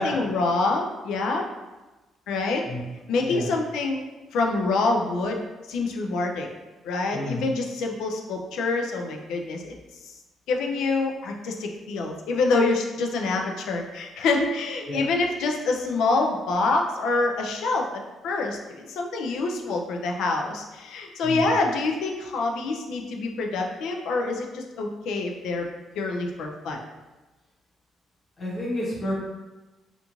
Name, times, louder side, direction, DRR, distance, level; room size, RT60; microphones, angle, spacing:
voice 1, 0.0-1.4 2.3-2.6 3.1-4.0 4.3-5.4 5.7-6.5 6.8-9.7 10.5-25.7 26.0-26.8, left 3 dB, 85° left, 2 dB, 0.4 m, -26 dB
voice 2, 28.4-29.1, left 1 dB, 25° left, -5 dB, 0.8 m, -30 dB
2.4 x 2.3 x 2.9 m, 1.1 s
cardioid pair, 145°, 0 cm